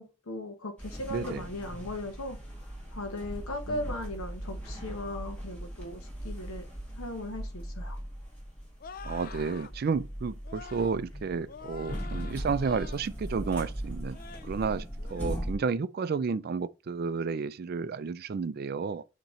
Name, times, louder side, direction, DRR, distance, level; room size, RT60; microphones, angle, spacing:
voice 1, 0.0-2.4 2.9-6.6 7.0-8.0, left 1 dB, 80° left, 0.9 m, -38 dB
sound 1, 0.8-15.6, equal, 5° left, 2.0 m, -39 dB
voice 2, 1.1-1.4 3.7-3.8 9.0-19.0, right 5 dB, 45° right, 0.3 m, -32 dB
sound 2, 8.8-9.7 10.4-11.0 11.5-13.0 13.4-13.8 14.1-14.5 15.0-15.3, left 5 dB, 40° left, 0.4 m, -46 dB
7.9 x 3.0 x 4.3 m
head